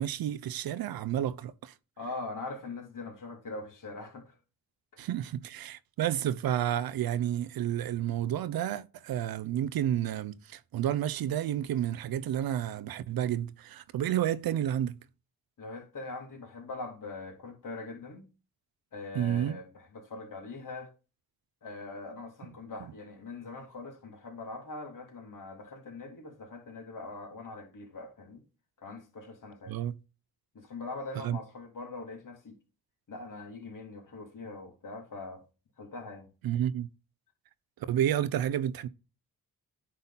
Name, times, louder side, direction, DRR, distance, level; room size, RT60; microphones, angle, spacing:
voice 1, 0.0-1.7 5.0-15.0 19.1-19.6 29.7-30.0 31.2-31.4 36.4-36.9 37.9-38.9, right 11 dB, 75° right, 0.6 m, -30 dB
voice 2, 2.0-4.3 4.9-5.1 15.6-18.3 18.9-20.9 21.6-28.4 28.8-29.7 30.5-32.6 33.1-35.4 35.8-36.3, left 3 dB, 60° left, 2.8 m, -42 dB
9.6 x 3.9 x 4.1 m
cardioid pair, 75°, 36 cm